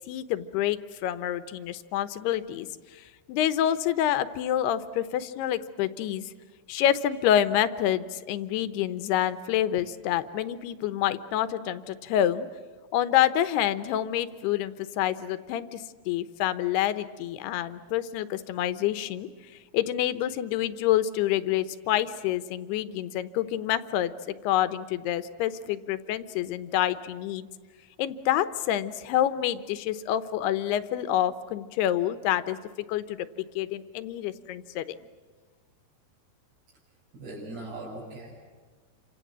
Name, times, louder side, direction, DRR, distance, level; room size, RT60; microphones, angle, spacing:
voice 1, 0.1-2.7 2.9-6.3 6.7-12.5 12.9-19.3 19.7-27.5 28.0-32.6 32.9-34.9, left 11 dB, 80° left, 13 dB, 3.0 m, -27 dB
voice 2, 37.1-38.5, right 2 dB, 80° right, -6 dB, 7.6 m, -40 dB
29.0 x 26.0 x 7.5 m, 1.4 s
omnidirectional pair, 4.7 m